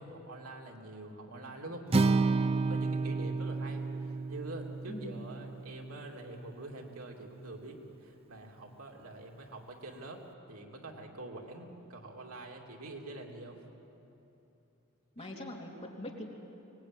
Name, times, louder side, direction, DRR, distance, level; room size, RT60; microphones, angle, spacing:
voice 1, 0.0-13.6 15.2-15.4, right 2 dB, 80° right, 1 dB, 2.9 m, -45 dB
Acoustic guitar, 1.9-6.1, right 3 dB, 25° right, 0.5 m, -31 dB
voice 2, 4.9-5.2 15.1-16.2, left 1 dB, 30° left, -1 dB, 3.1 m, -42 dB
24.0 x 20.0 x 9.1 m, 3.0 s
head